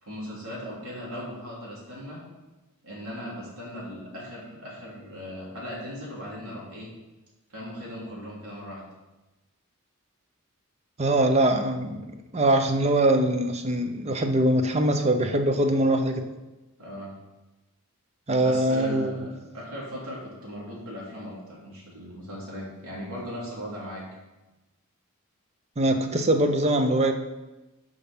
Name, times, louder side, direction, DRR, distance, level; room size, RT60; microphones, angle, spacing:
voice 1, 0.0-2.2 2.8-6.9 7.5-8.8 16.8-17.1 18.4-19.3 19.5-24.0, equal, 80° right, -5 dB, 3.2 m, -38 dB
voice 2, 11.0-12.1 12.3-16.3 18.3-19.3 25.8-27.1, right 1 dB, 30° right, 6 dB, 0.7 m, -22 dB
6.8 x 5.3 x 6.1 m, 1.1 s
head